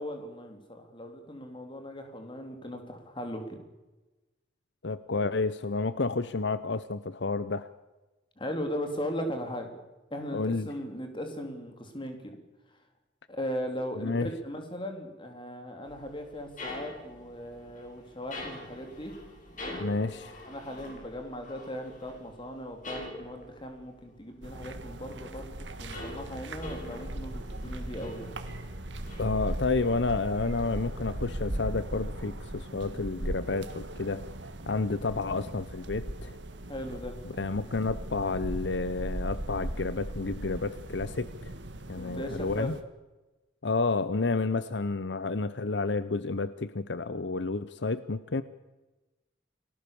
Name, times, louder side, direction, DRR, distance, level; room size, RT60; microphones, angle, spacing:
voice 1, 0.0-3.6 8.4-9.7 10.1-12.4 13.3-19.1 19.5-19.8 20.4-28.3 36.7-37.2 41.9-42.7, equal, 30° left, 4 dB, 3.8 m, -38 dB
voice 2, 4.8-7.7 10.3-10.7 14.0-14.3 19.8-20.4 29.2-34.2 34.7-36.4 37.2-41.5 41.9-42.8 43.6-48.4, left 3 dB, 70° left, 14 dB, 0.8 m, -30 dB
sound 1, 15.9-25.0 25.3-30.0, left 2 dB, 45° left, 7.2 m, -45 dB
sound 2, 24.4-42.8, right 1 dB, 80° right, 1.7 m, -38 dB
29.5 x 19.5 x 7.0 m, 1.1 s
head